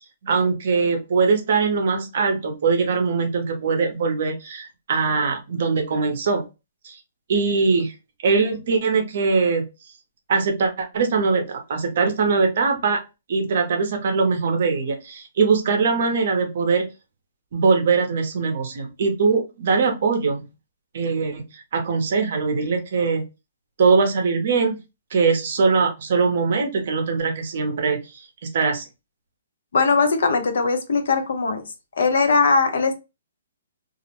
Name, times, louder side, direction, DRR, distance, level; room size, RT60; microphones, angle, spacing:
voice 1, 0.2-6.4 6.8-7.0 7.3-7.9 8.2-9.6 10.3-13.0 13.3-16.9 17.5-20.4 20.9-23.2 23.8-24.7 25.1-28.3 28.5-28.9, right 4 dB, 50° right, 0.6 m, -21 dB
voice 2, 29.7-31.7 32.0-32.9, left 4 dB, 65° left, 0.6 m, -20 dB
2.4 x 2.0 x 2.8 m
hypercardioid pair, 170°, 0 cm